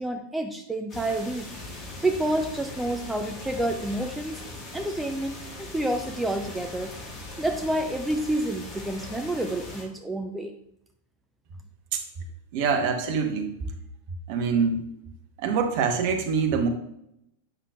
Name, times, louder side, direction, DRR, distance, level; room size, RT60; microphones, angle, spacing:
voice 1, 0.0-1.5 2.0-4.4 4.7-6.9 7.4-10.5, right 1 dB, 5° right, 5 dB, 0.4 m, -29 dB
sound 1, 0.9-9.8, left 2 dB, 30° left, 1.5 m, -40 dB
voice 2, 12.5-13.5 14.3-14.8 15.4-16.7, right 5 dB, 45° right, 5 dB, 1.0 m, -24 dB
8.0 x 5.7 x 2.3 m, 0.79 s
figure-of-eight pair, 90°, 0 cm